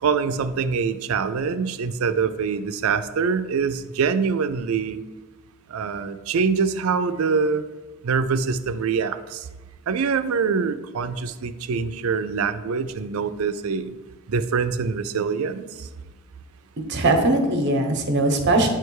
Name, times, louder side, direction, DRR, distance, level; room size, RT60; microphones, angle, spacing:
voice 1, 0.0-5.0 5.7-7.6 8.0-9.5 9.9-14.0 14.3-15.9, right 5 dB, 75° right, 12 dB, 0.4 m, -24 dB
voice 2, 16.8-18.7, right 2 dB, 55° right, 5 dB, 0.9 m, -20 dB
8.7 x 3.3 x 4.7 m, 1.2 s
head